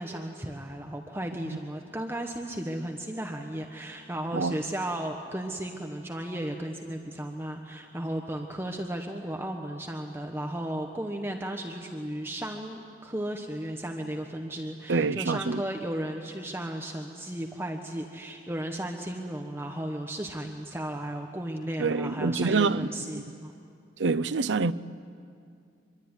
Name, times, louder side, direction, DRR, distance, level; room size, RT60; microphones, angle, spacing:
voice 1, 0.0-23.5, right 1 dB, 15° right, 1.2 m, -35 dB
voice 2, 14.9-15.6 21.8-23.2 24.0-24.7, right 4 dB, 90° right, 0.6 m, -26 dB
25.0 x 24.0 x 9.8 m
head